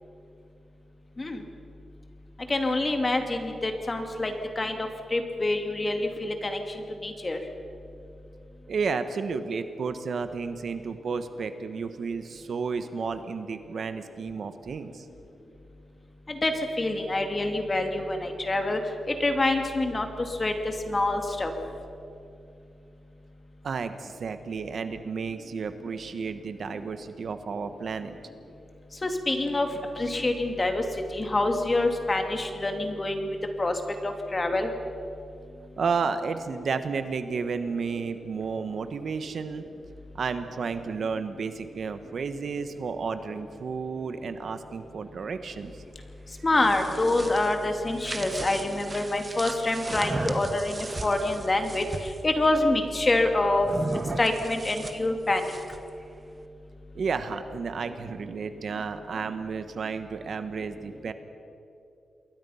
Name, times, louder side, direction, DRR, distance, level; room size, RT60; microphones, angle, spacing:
voice 1, 2.5-6.6 7.0-7.4 16.3-16.5 16.8-18.8 19.1-20.1 20.4-20.5 20.9-21.5 29.0-29.7 30.0-30.8 31.1-33.3 33.6-33.7 34.0-34.7 46.4-51.8 52.2-53.7 54.2-55.5, left 2 dB, 25° left, 5 dB, 2.4 m, -26 dB
voice 2, 8.7-15.0 23.6-28.2 35.8-39.6 40.1-45.7 56.9-61.1, right 5 dB, 60° right, 9 dB, 1.3 m, -32 dB
sound 1, 46.4-52.2 53.6-55.9, right 2 dB, 25° right, 1.3 m, -36 dB
28.0 x 21.5 x 5.7 m, 2.7 s
wide cardioid pair, 125°, 0 cm